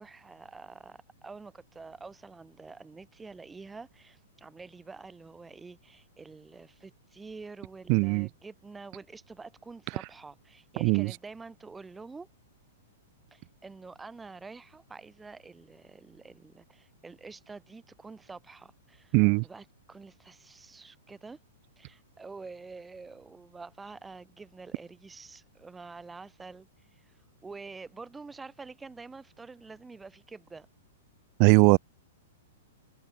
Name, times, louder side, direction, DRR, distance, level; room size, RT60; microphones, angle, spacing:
voice 1, 0.0-12.3 13.3-19.1 19.4-21.4 21.8-30.7, right 4 dB, 10° right, 2.9 m, -47 dB
voice 2, 7.9-8.3 10.8-11.1 19.1-19.4 31.4-31.8, right 40 dB or more, 40° right, 0.8 m, -20 dB
figure-of-eight pair, 105°, 0 cm